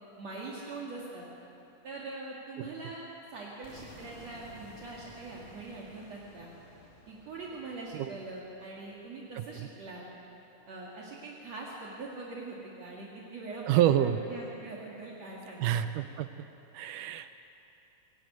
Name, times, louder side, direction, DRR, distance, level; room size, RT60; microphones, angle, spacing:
voice 1, 0.2-1.3 1.8-6.5 7.1-10.1 10.7-15.8, right 3 dB, 55° right, -4 dB, 3.2 m, -43 dB
sound 1, 3.6-9.5, left 1 dB, 25° left, 4.6 m, -54 dB
voice 2, 13.7-14.2 15.6-16.3 16.7-17.4, right 11 dB, 80° right, 11 dB, 2.2 m, -27 dB
23.5 x 17.5 x 9.3 m, 3.0 s
omnidirectional pair, 3.7 m